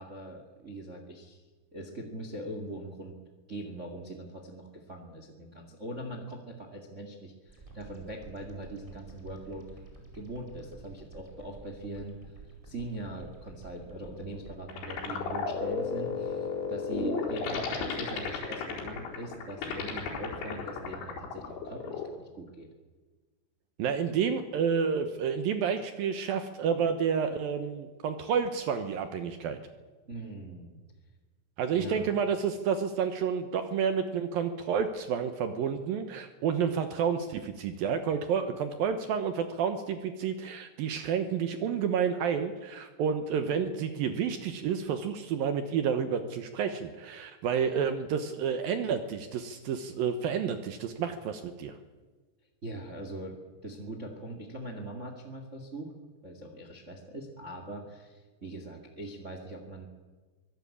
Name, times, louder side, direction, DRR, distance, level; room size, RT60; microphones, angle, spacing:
voice 1, 0.0-1.4 1.7-3.1 3.5-9.6 10.1-12.2 12.6-22.7 30.1-30.8 31.7-32.1 52.6-53.4 53.6-55.9 56.2-59.9, right 1 dB, 50° right, 4 dB, 0.8 m, -41 dB
sound 1, 7.5-14.6, right 3 dB, 5° right, 4.4 m, -50 dB
sound 2, 14.0-22.1, left 4 dB, 85° left, 6.6 m, -34 dB
voice 2, 23.8-29.6 31.6-51.7, right 7 dB, 70° right, 8 dB, 2.3 m, -30 dB
24.5 x 17.0 x 8.6 m, 1.3 s
omnidirectional pair, 5.3 m